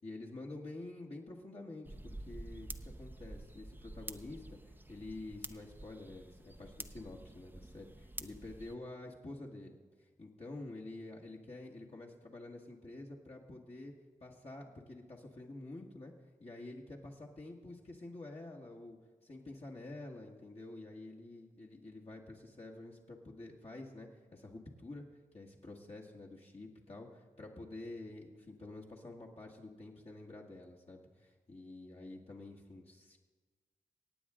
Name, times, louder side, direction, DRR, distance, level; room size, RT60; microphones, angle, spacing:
voice 1, 0.0-13.9 14.2-16.1 16.4-25.1 25.3-33.2, left 2 dB, 45° left, -2 dB, 1.7 m, -49 dB
sound 1, 1.8-8.7, right 1 dB, 15° right, 0.7 m, -49 dB
23.5 x 8.7 x 3.7 m, 1.4 s
cardioid pair, 45°, 15 cm